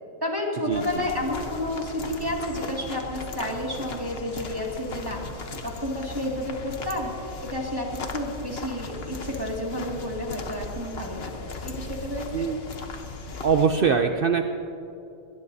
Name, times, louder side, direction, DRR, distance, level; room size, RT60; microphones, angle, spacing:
voice 1, 0.2-12.5, left 1 dB, 15° right, -2 dB, 2.2 m, -31 dB
sound 1, 0.7-13.7, left 3 dB, 45° left, 1.1 m, -37 dB
voice 2, 13.4-14.4, right 6 dB, 75° right, 6 dB, 0.5 m, -22 dB
21.5 x 19.5 x 2.7 m, 2.8 s
omnidirectional pair, 1.7 m